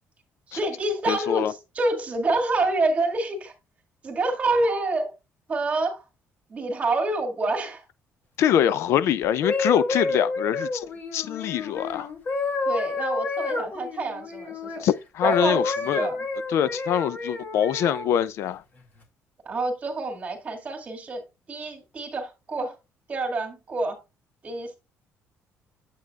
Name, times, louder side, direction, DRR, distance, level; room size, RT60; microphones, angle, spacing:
voice 1, 0.5-3.5 4.0-5.1 5.5-6.0 6.5-7.8 12.7-14.8 15.2-16.2 19.5-22.8 23.1-24.0 24.4-24.8, right 2 dB, 30° right, 2.0 m, -27 dB
voice 2, 1.1-1.5 8.4-10.9 11.1-12.1 14.8-16.1 16.5-18.6, left 10 dB, 70° left, 0.5 m, -24 dB
sound 1, 9.2-14.8 15.2-18.1 18.7-19.0, left 3 dB, 45° left, 2.3 m, -29 dB
8.3 x 8.1 x 2.4 m
cardioid pair, 155°, 5 cm